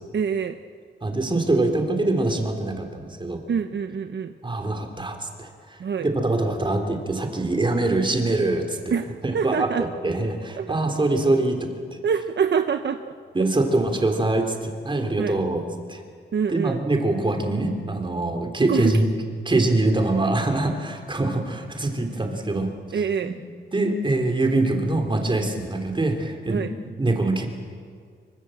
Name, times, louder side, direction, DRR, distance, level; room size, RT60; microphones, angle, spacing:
voice 1, 0.1-0.6 3.5-4.3 5.8-6.1 8.9-9.0 9.3-9.8 10.6-10.7 12.0-13.1 15.2-15.4 16.3-16.8 18.7-18.9 22.9-23.3 26.5-26.7, right 6 dB, 65° right, 8 dB, 0.9 m, -25 dB
voice 2, 1.0-3.4 4.4-8.9 9.2-11.7 13.3-15.6 15.9-16.0 16.5-19.1 19.4-23.1 23.7-26.7 27.0-27.5, right 2 dB, 25° right, 4 dB, 3.5 m, -24 dB
25.5 x 24.5 x 7.9 m, 2.1 s
wide cardioid pair, 135°, 20 cm